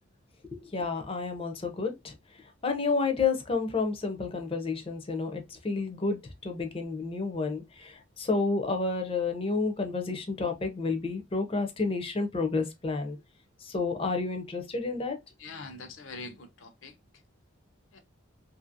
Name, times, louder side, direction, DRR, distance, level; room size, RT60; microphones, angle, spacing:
voice 1, 0.5-2.1 2.6-13.2 13.6-15.2, left 4 dB, 30° left, 0.5 m, -30 dB
voice 2, 15.4-16.9 17.9-18.0, left 3 dB, 80° left, 0.7 m, -43 dB
2.7 x 2.5 x 2.5 m
head